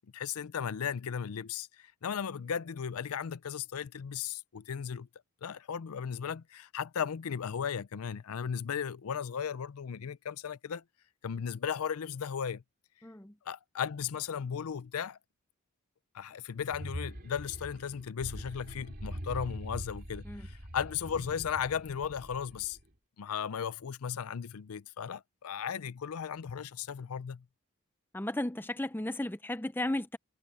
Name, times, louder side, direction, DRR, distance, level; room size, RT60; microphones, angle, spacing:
voice 1, 0.1-5.1 5.4-10.8 11.2-12.6 13.5-15.2 16.1-22.8 23.2-27.4, left 7 dB, 85° left, 0.5 m, -36 dB
voice 2, 13.0-13.3 20.3-20.4 28.1-30.2, left 1 dB, 10° left, 0.6 m, -34 dB
sound 1, 16.5-22.9, equal, 45° right, 3.3 m, -43 dB
head